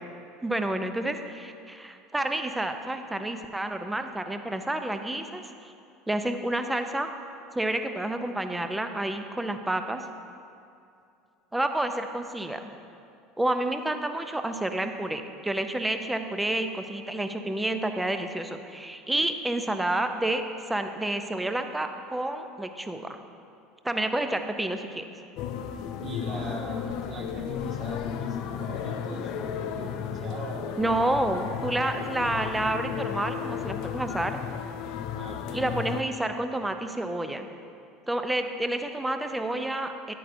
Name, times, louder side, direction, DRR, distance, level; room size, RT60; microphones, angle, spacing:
voice 1, 0.4-5.7 6.1-7.1 7.5-10.0 11.5-12.6 13.4-23.2 23.8-25.0 30.8-34.4 35.5-37.5 38.1-40.1, right 1 dB, 10° right, 7 dB, 0.6 m, -29 dB
sound 1, 25.4-36.0, left 8 dB, 60° left, 0.4 m, -34 dB
voice 2, 26.0-30.8 35.1-35.6, right 3 dB, 40° right, 0 dB, 1.3 m, -41 dB
10.0 x 8.5 x 2.7 m, 2.5 s
figure-of-eight pair, 70°, 0 cm